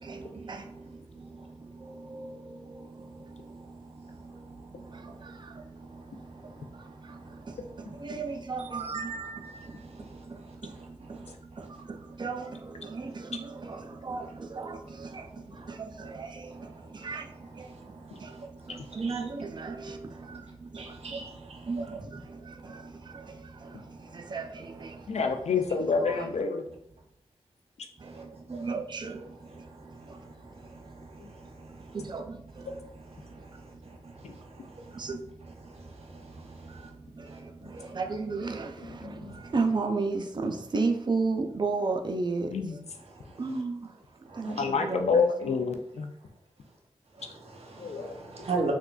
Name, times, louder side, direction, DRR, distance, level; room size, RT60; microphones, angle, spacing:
voice 1, 0.0-25.3 25.7-26.3 28.0-30.4 30.7-34.1 34.6-42.8 43.4-44.0 44.3-45.7 47.2-47.3 47.8-48.0, right 3 dB, 40° right, 0.4 m, -36 dB
voice 2, 5.9-7.5 8.7-10.8 11.1-11.7 15.2-15.3 15.6-15.7 17.6-19.2 20.7-21.6 22.7-23.3 23.8-24.3 24.9-25.2 28.0-28.2 29.6-32.0 33.1-35.0 35.6-36.9 37.3-37.4 37.6-37.9 39.3-39.5 43.1-43.4 44.3-44.6 47.3-48.7, right 3 dB, 60° right, 0.8 m, -42 dB
voice 3, 25.1-26.6 34.2-34.3 38.8-39.3 42.4-42.8 44.5-46.1 47.8-48.1, left 5 dB, 70° left, 0.4 m, -28 dB
3.6 x 2.3 x 2.3 m
cardioid pair, 45°, 12 cm